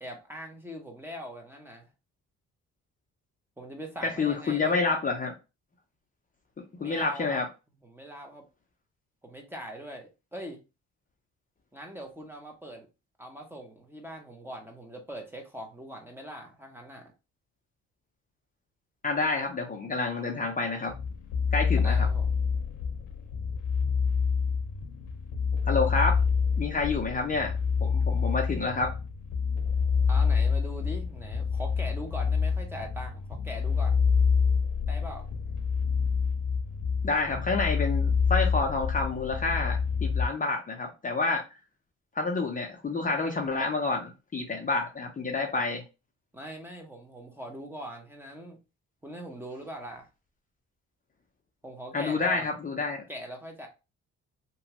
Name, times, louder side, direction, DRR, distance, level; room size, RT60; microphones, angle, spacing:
voice 1, 0.0-1.9 3.6-4.8 6.8-7.4 7.8-8.4 9.2-10.6 11.7-12.9 13.2-17.1 21.8-22.4 30.1-34.0 34.9-35.3 46.3-48.6 49.0-50.1 51.6-52.5 53.1-53.7, equal, 5° right, 0.8 m, -41 dB
voice 2, 4.0-5.3 6.8-7.5 19.0-20.9 21.5-22.1 25.7-26.2 26.6-27.5 27.8-28.9 37.0-41.4 42.2-45.8 51.9-53.0, left 3 dB, 25° left, 0.6 m, -28 dB
sound 1, 20.9-40.3, left 5 dB, 80° left, 0.6 m, -27 dB
2.9 x 2.3 x 2.8 m
cardioid pair, 90°, 30 cm